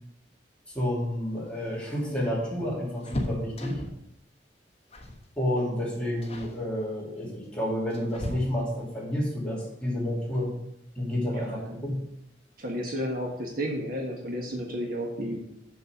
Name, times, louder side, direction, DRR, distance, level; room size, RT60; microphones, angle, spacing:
voice 1, 0.7-3.8 5.4-10.5 11.0-12.0, left 1 dB, 5° left, -5 dB, 2.5 m, -30 dB
sound 1, 1.4-4.1 4.9-5.3 5.5-5.8 6.2-6.6 7.4-8.9 10.6-10.7 11.1-11.2 12.4-12.8 13.1-13.2 13.5-13.7, left 1 dB, 35° left, 1.2 m, -38 dB
voice 2, 11.5-11.8 12.6-15.4, equal, 55° right, 0 dB, 1.5 m, -32 dB
7.0 x 6.5 x 5.0 m, 0.78 s
head